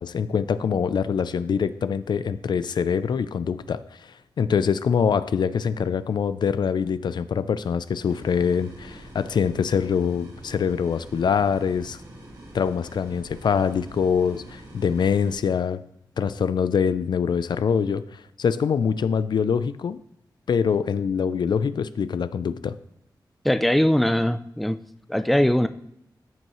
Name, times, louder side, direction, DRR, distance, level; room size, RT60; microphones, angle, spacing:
voice 1, 0.0-12.0 12.5-15.8 16.2-20.0 20.5-22.8, left 6 dB, 75° left, 15 dB, 0.4 m, -24 dB
sound 1, 8.0-15.3, right 1 dB, 55° right, 2.5 m, -45 dB
voice 2, 23.4-24.8 25.1-25.7, left 1 dB, ahead, 11 dB, 0.4 m, -21 dB
14.0 x 5.5 x 3.0 m, 0.76 s
wide cardioid pair, 125°, 8 cm